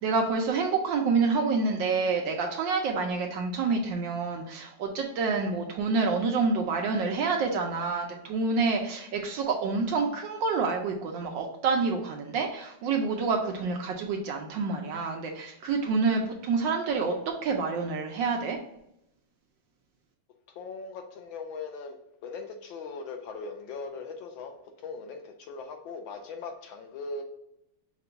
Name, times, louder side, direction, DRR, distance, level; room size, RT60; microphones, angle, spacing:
voice 1, 0.0-17.1 17.4-18.6, right 4 dB, 70° right, 1 dB, 1.1 m, -28 dB
voice 2, 20.5-22.0 22.2-27.2, left 4 dB, 75° left, 4 dB, 1.3 m, -39 dB
5.7 x 2.3 x 3.9 m, 0.82 s
omnidirectional pair, 2.4 m